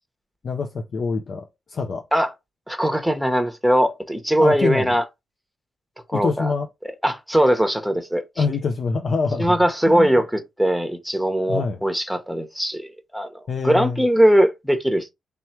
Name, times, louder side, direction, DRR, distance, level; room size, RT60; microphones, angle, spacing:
voice 1, 0.4-2.0 4.4-4.9 6.1-6.7 8.4-9.6 9.9-10.1 11.5-11.8 13.5-14.0, left 4 dB, 55° left, 0.6 m, -25 dB
voice 2, 2.7-5.0 6.1-6.5 7.0-8.4 9.4-15.1, right 1 dB, ahead, 1.0 m, -20 dB
3.4 x 3.1 x 4.4 m
cardioid pair, 95°, 0 cm